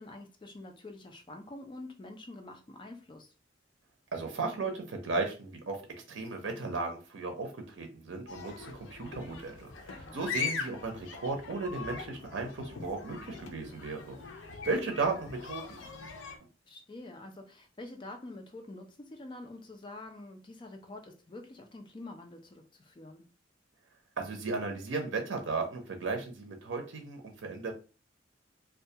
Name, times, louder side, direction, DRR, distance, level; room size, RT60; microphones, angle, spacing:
voice 1, 0.0-3.3 9.9-10.2 16.7-23.3, left 2 dB, 25° left, 0.4 m, -47 dB
voice 2, 4.1-5.8 6.1-14.2 14.6-15.8 24.2-27.7, right 3 dB, 75° right, 0.6 m, -35 dB
sound 1, 8.3-16.4, left 6 dB, 80° left, 0.5 m, -41 dB
2.3 x 2.2 x 2.7 m
head